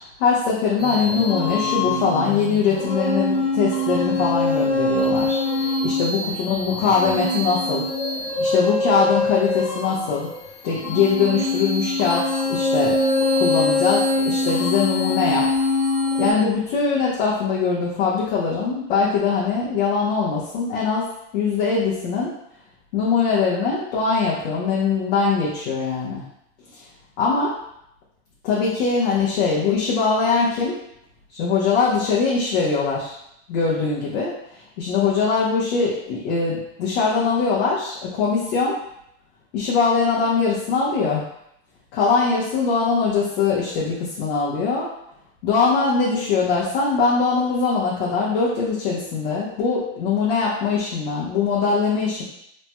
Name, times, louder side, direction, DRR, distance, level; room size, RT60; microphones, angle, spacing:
voice 1, 0.2-5.4 5.8-7.9 8.4-10.3 10.6-13.0 13.4-15.5 16.2-21.1 21.3-22.3 22.9-26.2 27.2-27.5 28.4-30.8 31.3-33.1 33.5-34.3 34.8-38.8 39.5-41.2 41.9-44.9 45.4-52.2, left 5 dB, 75° left, -7 dB, 0.9 m, -22 dB
sound 1, 0.8-16.3, left 2 dB, 55° left, 1.4 m, -23 dB
3.2 x 2.8 x 2.2 m, 0.77 s
supercardioid pair, 140°, 31 cm